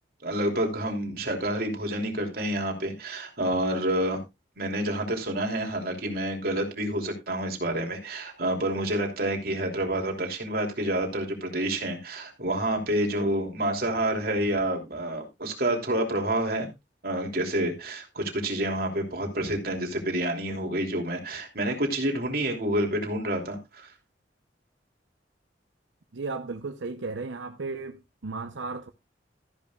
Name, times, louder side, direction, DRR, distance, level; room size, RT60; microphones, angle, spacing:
voice 1, 0.2-4.2 4.6-16.7 17.0-23.9, right 1 dB, 55° right, 3.1 m, -28 dB
voice 2, 26.1-28.9, right 3 dB, 90° right, 0.8 m, -35 dB
14.0 x 10.5 x 2.4 m
head